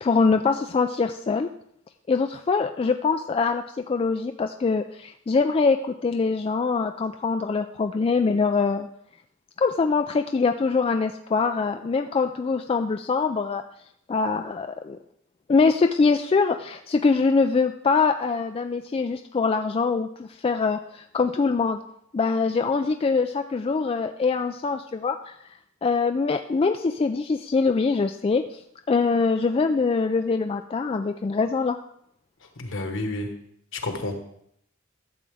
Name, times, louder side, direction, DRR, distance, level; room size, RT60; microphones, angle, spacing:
voice 1, 0.0-1.5 2.1-8.9 9.6-13.6 14.1-15.0 15.5-21.8 22.1-25.3 25.8-28.6 28.9-31.8, left 4 dB, 30° left, 6 dB, 0.3 m, -23 dB
voice 2, 32.6-33.3 33.7-34.1, left 2 dB, 65° left, 5 dB, 1.4 m, -30 dB
12.5 x 7.5 x 3.4 m, 0.70 s
head